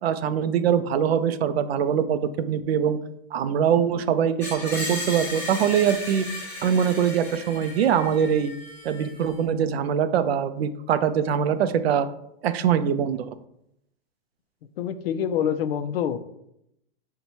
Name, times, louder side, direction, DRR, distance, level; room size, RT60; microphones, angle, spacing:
voice 1, 0.0-3.0 3.3-6.3 6.6-8.5 8.8-12.1 12.4-13.3, right 8 dB, 80° right, 12 dB, 0.5 m, -23 dB
Screech, 4.4-9.4, left 1 dB, 5° left, 0.6 m, -35 dB
voice 2, 14.8-16.2, left 9 dB, 70° left, 12 dB, 0.5 m, -26 dB
4.5 x 2.2 x 4.0 m, 0.79 s
hypercardioid pair, 150°, 30 cm